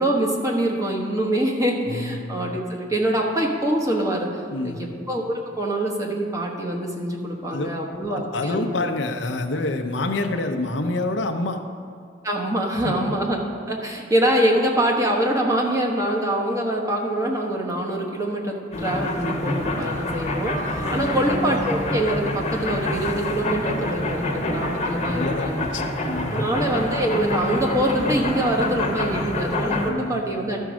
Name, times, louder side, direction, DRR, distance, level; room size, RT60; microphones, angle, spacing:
voice 1, 0.0-4.3 4.6-8.6 12.2-25.6 26.3-30.6, right 1 dB, 20° right, 0 dB, 1.2 m, -24 dB
voice 2, 1.9-2.2 4.5-4.8 7.5-7.7 8.1-11.6 12.7-12.9 20.9-21.2 25.1-26.5 29.9-30.2, left 2 dB, 80° left, 5 dB, 0.7 m, -27 dB
sound 1, 18.7-29.9, left 1 dB, 40° left, 1.1 m, -27 dB
12.5 x 4.6 x 6.2 m, 2.3 s
head